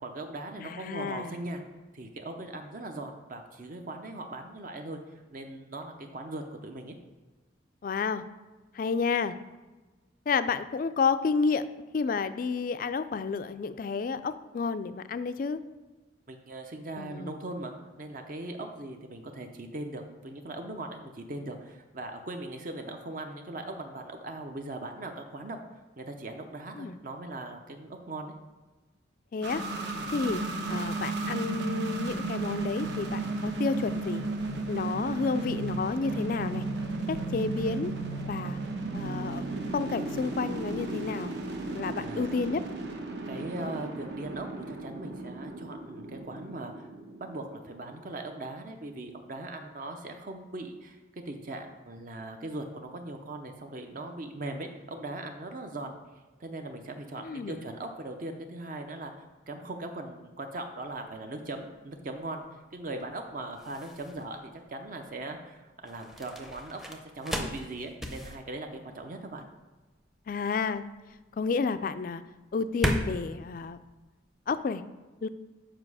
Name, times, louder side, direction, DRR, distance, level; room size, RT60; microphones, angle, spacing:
voice 1, 0.0-1.6 1.9-6.9 16.3-25.6 26.0-28.3 30.0-30.1 39.3-39.4 41.9-42.3 43.3-46.9 47.2-51.0 51.3-55.9 56.4-59.1 59.5-64.4 64.7-69.5, right 2 dB, 45° right, 4 dB, 0.6 m, -39 dB
voice 2, 0.6-1.4 7.8-8.2 8.7-9.4 10.3-11.7 11.9-15.6 17.0-17.4 26.8-27.0 29.3-29.6 30.1-30.4 30.7-34.2 34.7-36.6 37.1-37.9 38.3-38.6 38.9-39.4 39.7-41.4 41.7-42.6 57.2-57.6 70.3-70.8 71.3-72.2 72.5-73.8 74.5-74.8 75.2-75.3, left 5 dB, 45° left, 13 dB, 0.3 m, -30 dB
sound 1, 29.4-47.9, right 2 dB, 65° right, 1.0 m, -34 dB
sound 2, 60.8-74.7, equal, ahead, 0.6 m, -38 dB
7.5 x 5.0 x 4.8 m, 1.2 s
head